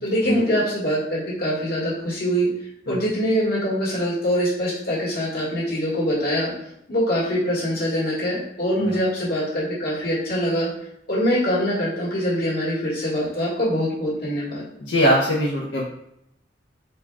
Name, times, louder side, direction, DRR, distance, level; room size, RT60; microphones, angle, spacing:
voice 1, 0.0-2.5 2.9-6.5 6.9-10.7 11.1-14.6, equal, 60° left, -7 dB, 1.7 m, -23 dB
voice 2, 14.8-15.8, equal, 90° left, -3 dB, 0.6 m, -21 dB
4.3 x 2.3 x 4.6 m, 0.77 s
head